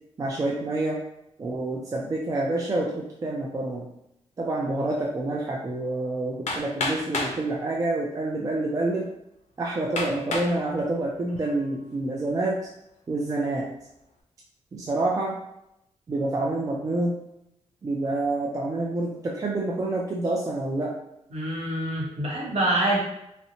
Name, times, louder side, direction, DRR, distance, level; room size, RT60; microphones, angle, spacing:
voice 1, 0.2-1.0 1.4-3.9 4.4-9.1 9.6-12.6 13.1-13.7 14.7-15.4 16.1-17.2 17.8-21.0, right 2 dB, 25° right, -3 dB, 0.3 m, -27 dB
Hammer, 6.5-7.4 8.3-8.4 9.0-9.1 10.0-10.6 11.1-11.6, left 2 dB, 70° left, 0.5 m, -30 dB
voice 2, 21.3-23.0, right 1 dB, 55° right, -4 dB, 0.8 m, -25 dB
2.7 x 2.0 x 2.7 m, 0.81 s
wide cardioid pair, 135°, 13 cm